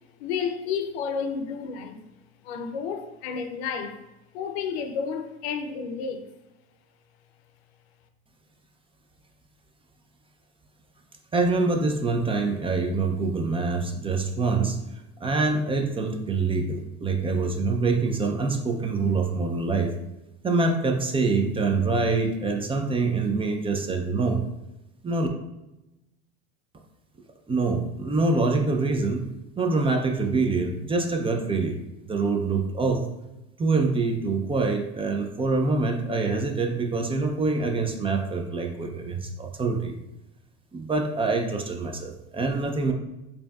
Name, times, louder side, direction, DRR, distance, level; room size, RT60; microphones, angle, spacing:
voice 1, 0.2-2.1 2.4-4.0 4.3-6.2, left 6 dB, 80° left, 0.6 m, -31 dB
voice 2, 11.3-14.8 15.2-19.9 20.4-24.4 25.0-25.3 27.5-29.3 29.6-33.1 33.6-39.9 40.7-42.9, right 3 dB, 15° right, 0.4 m, -25 dB
5.1 x 2.8 x 2.3 m
supercardioid pair, 110°, 31 cm